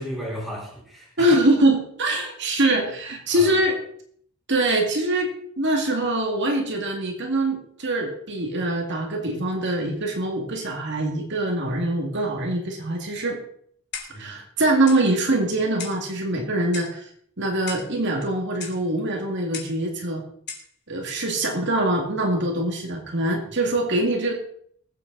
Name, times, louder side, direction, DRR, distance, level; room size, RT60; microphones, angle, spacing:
voice 1, 0.0-1.4 3.3-3.6 14.1-14.4, equal, ahead, -5 dB, 4.2 m, -34 dB
voice 2, 1.2-3.8 4.5-5.3 5.6-13.4 14.2-17.1 17.4-20.2 20.9-24.3, right 1 dB, 55° right, 2 dB, 2.4 m, -23 dB
Clock, 13.9-14.3 14.9-15.1 15.8-16.1 16.7-17.0 17.7-17.9 18.6-18.8 19.5-19.8 20.5-20.7, left 6 dB, 50° left, 2.7 m, -36 dB
20.0 x 8.2 x 4.1 m, 0.62 s
head